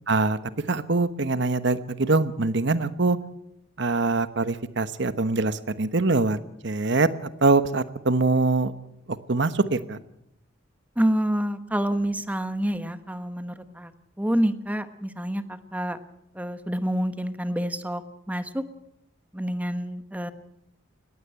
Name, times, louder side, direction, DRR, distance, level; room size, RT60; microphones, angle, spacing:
voice 1, 0.1-0.4 0.7-3.2 3.8-6.4 6.6-7.1 7.4-8.7 9.1-10.0, right 3 dB, 60° right, 13 dB, 1.1 m, -23 dB
voice 2, 11.0-13.9 14.2-16.0 16.3-18.6 19.3-20.3, equal, 10° right, 11 dB, 1.0 m, -27 dB
19.5 x 15.5 x 9.0 m, 0.82 s
head